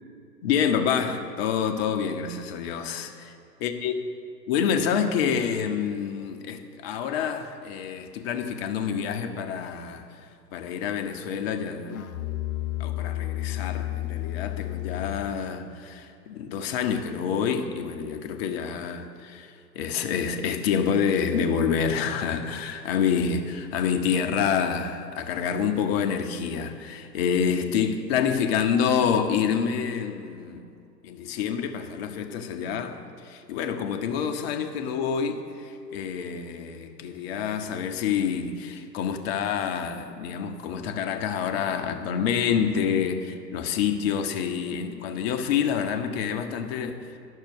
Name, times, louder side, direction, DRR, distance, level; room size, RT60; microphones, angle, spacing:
voice 1, 0.4-3.3 3.6-3.9 4.5-10.0 10.5-12.0 12.8-30.6 31.0-47.0, left 7 dB, 40° left, 6 dB, 1.0 m, -27 dB
Musical instrument, 11.9-15.4, left 16 dB, 60° left, 0.7 m, -32 dB
10.5 x 6.6 x 6.5 m, 2.6 s
figure-of-eight pair, 115°, 50 cm